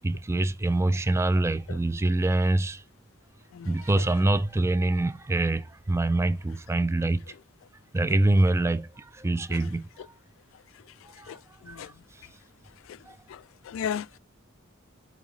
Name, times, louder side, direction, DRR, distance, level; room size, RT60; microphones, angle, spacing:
voice 1, 0.0-2.8 3.7-7.2 7.9-9.9 11.2-11.4 11.7-11.9 13.1-13.2, right 2 dB, 15° right, 0.3 m, -25 dB
voice 2, 3.5-4.0 9.5-9.6 11.3-11.9 12.9-13.0 13.3-14.2, left 8 dB, 65° left, 0.3 m, -36 dB
9.2 x 3.6 x 3.1 m
head